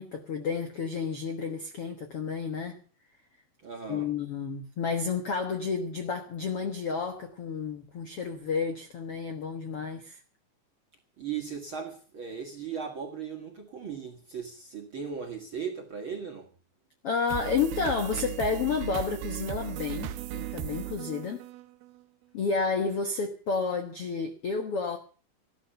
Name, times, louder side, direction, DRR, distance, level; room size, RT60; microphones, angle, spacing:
voice 1, 0.0-2.8 3.9-10.2 17.0-21.4 22.3-25.0, left 5 dB, 60° left, 1.5 m, -31 dB
voice 2, 3.6-4.1 11.2-16.5, right 6 dB, 45° right, 1.8 m, -37 dB
sound 1, 17.3-22.0, right 12 dB, 75° right, 2.7 m, -37 dB
14.0 x 12.5 x 6.8 m
omnidirectional pair, 4.8 m